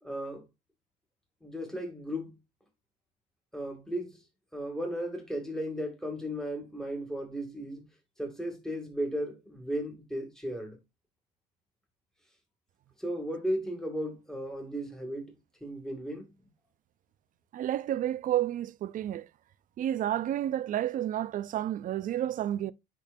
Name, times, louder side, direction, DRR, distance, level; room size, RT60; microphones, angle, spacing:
voice 1, 0.0-0.4 1.4-2.4 3.5-4.2 4.5-7.9 8.2-10.8 13.0-15.3 15.6-16.3, equal, 5° left, 2.4 m, -35 dB
voice 2, 17.5-19.3 19.8-22.7, right 12 dB, 55° right, 0.5 m, -30 dB
10.5 x 3.9 x 2.6 m
cardioid pair, 110°, 17 cm